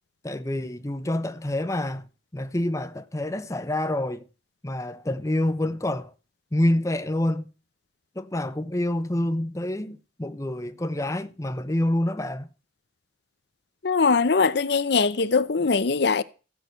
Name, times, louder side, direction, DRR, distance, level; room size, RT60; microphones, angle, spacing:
voice 1, 0.2-2.1 2.3-4.2 4.6-6.1 6.5-7.5 8.2-12.5, left 1 dB, 15° left, 0.7 m, -27 dB
voice 2, 13.8-16.2, left 4 dB, 60° left, 0.7 m, -21 dB
15.0 x 6.0 x 8.0 m
head